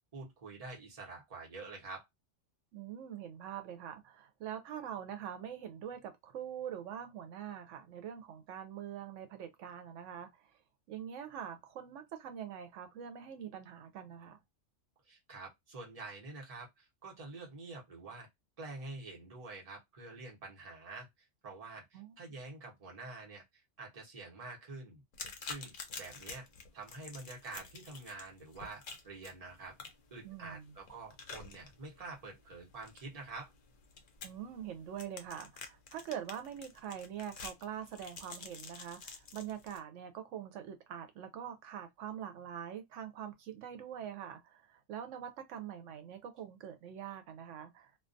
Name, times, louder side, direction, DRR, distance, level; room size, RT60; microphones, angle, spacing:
voice 1, 0.1-2.1 15.1-18.3 18.6-21.1 21.4-25.0 25.4-26.5 26.7-29.8 30.1-33.5, right 3 dB, 35° right, 0.9 m, -47 dB
voice 2, 2.7-10.5 10.9-14.4 21.9-22.1 30.2-30.7 34.2-48.0, right 9 dB, 85° right, 0.9 m, -44 dB
sound 1, 25.1-39.8, left 5 dB, 55° left, 0.6 m, -49 dB
2.3 x 2.2 x 2.5 m
omnidirectional pair, 1.2 m